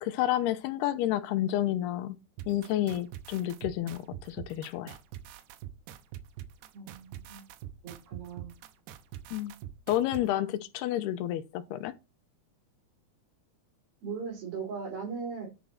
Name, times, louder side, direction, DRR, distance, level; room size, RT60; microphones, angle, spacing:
voice 1, 0.0-2.2 2.5-5.0 9.3-9.5 9.9-11.9, left 13 dB, 85° left, 2.8 m, -30 dB
sound 1, 2.4-10.2, right 11 dB, 85° right, 3.0 m, -44 dB
voice 2, 6.7-7.4 7.8-8.5 14.0-15.5, right 5 dB, 65° right, 6.5 m, -38 dB
10.0 x 6.2 x 4.5 m
omnidirectional pair, 4.6 m